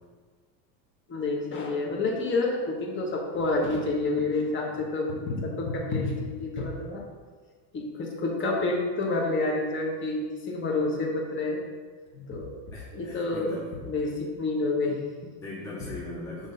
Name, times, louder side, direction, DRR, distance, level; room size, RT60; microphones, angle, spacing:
voice 1, 1.1-7.0 7.7-11.6 12.1-12.5 12.9-13.5 13.8-15.3, left 2 dB, 25° left, -1 dB, 1.2 m, -28 dB
voice 2, 12.7-13.7 15.4-16.5, left 2 dB, 10° left, -6 dB, 0.3 m, -39 dB
6.7 x 3.5 x 5.5 m, 1.5 s
supercardioid pair, 145°, 49 cm